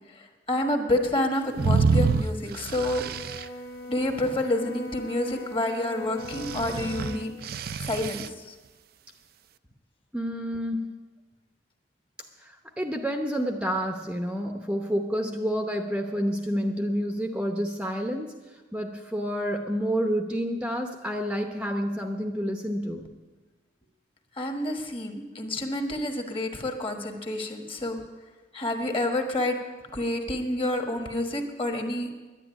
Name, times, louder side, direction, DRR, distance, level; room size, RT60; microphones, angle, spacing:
voice 1, 0.1-3.0 3.9-7.3 7.8-8.5 24.4-28.0 28.5-29.6 29.9-32.1, left 1 dB, 30° left, 4 dB, 1.5 m, -28 dB
sound 1, 1.6-3.4 6.2-8.3, right 4 dB, 55° right, 0.4 m, -27 dB
Brass instrument, 3.0-7.3, left 1 dB, 65° left, 1.4 m, -40 dB
voice 2, 10.1-10.9 12.4-23.1, equal, 5° right, 3 dB, 0.8 m, -29 dB
10.5 x 10.0 x 9.6 m, 1.3 s
head